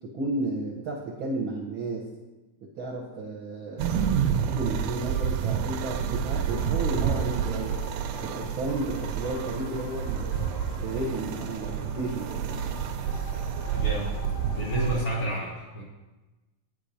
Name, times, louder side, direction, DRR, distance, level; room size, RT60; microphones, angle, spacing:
voice 1, 0.0-2.1 2.6-7.8 8.1-10.4 10.8-12.6, right 2 dB, 65° right, -1 dB, 1.2 m, -33 dB
sound 1, 3.8-15.0, right 8 dB, 85° right, 2.1 m, -29 dB
sound 2, 6.5-15.2, left 6 dB, 85° left, 2.5 m, -45 dB
voice 2, 13.7-14.2 14.5-15.8, right 1 dB, 50° left, -3 dB, 1.7 m, -30 dB
9.0 x 5.7 x 5.1 m, 1.1 s
omnidirectional pair, 3.5 m